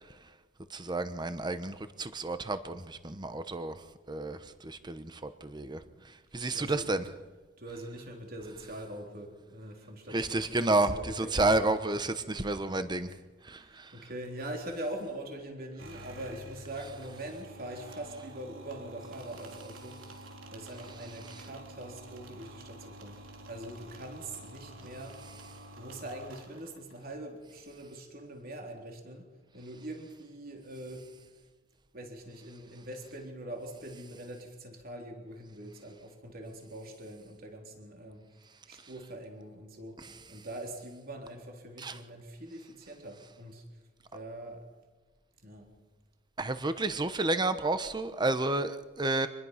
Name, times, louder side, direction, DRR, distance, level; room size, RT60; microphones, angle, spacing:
voice 1, 0.7-3.8 4.1-7.0 10.1-13.1 13.4-13.9 40.0-40.2 41.8-42.0 46.4-49.3, right 2 dB, 20° right, 10 dB, 1.0 m, -31 dB
voice 2, 6.5-6.9 7.6-11.5 13.5-20.0 20.5-23.2 23.5-25.2 25.7-31.1 31.9-38.2 38.7-40.0 40.3-43.6 44.1-44.7 45.4-45.7, right 1 dB, 50° right, 2 dB, 3.7 m, -43 dB
sound 1, 15.8-27.1, right 1 dB, 90° right, 3.9 m, -49 dB
26.0 x 20.5 x 5.8 m, 1.3 s
head